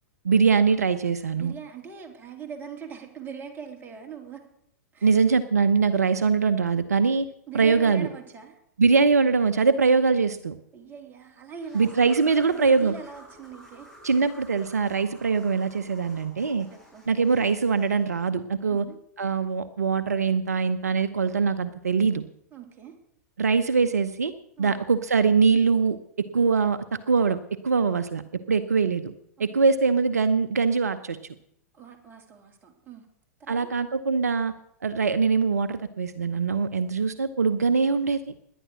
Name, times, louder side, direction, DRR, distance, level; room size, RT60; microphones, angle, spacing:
voice 1, 0.2-1.5 5.0-7.3 7.5-8.1 8.8-10.5 11.7-12.9 14.0-16.7 17.1-18.8 19.2-22.2 23.4-24.3 24.6-27.4 27.6-28.2 28.5-29.1 29.4-31.2 33.5-34.5 34.8-38.3, right 5 dB, 70° right, 12 dB, 0.8 m, -22 dB
voice 2, 1.3-4.4 4.9-5.2 7.5-8.6 10.7-14.3 16.7-17.0 18.7-19.0 22.5-22.9 24.6-24.8 29.4-29.7 31.7-33.1 33.4-33.7, right 7 dB, 20° right, 3 dB, 3.1 m, -42 dB
sound 1, 11.6-18.3, equal, 5° left, 7.0 m, -52 dB
18.0 x 11.0 x 6.3 m, 0.74 s
figure-of-eight pair, 100°, 9 cm